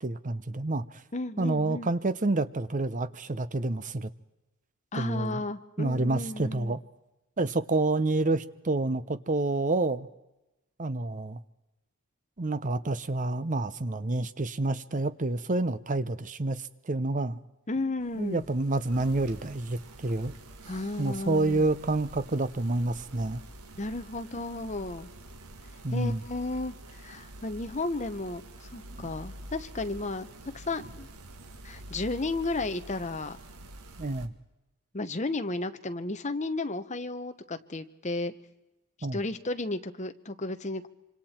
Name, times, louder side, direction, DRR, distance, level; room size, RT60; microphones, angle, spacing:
voice 1, 0.0-1.0 1.4-4.1 4.9-5.4 5.8-6.8 7.4-10.1 10.8-11.4 12.4-17.4 18.2-20.3 21.0-23.4 25.8-26.2 34.0-34.3 39.0-39.2, right 2 dB, 35° right, 15 dB, 0.7 m, -28 dB
voice 2, 1.1-1.9 4.9-6.8 17.7-18.4 20.7-21.6 23.8-25.1 25.9-31.1 31.6-33.4 34.9-38.3 39.1-40.9, left 2 dB, 30° left, 9 dB, 1.0 m, -33 dB
sound 1, 18.0-34.3, right 1 dB, 90° right, 1.6 m, -47 dB
26.5 x 26.0 x 4.4 m, 0.99 s
head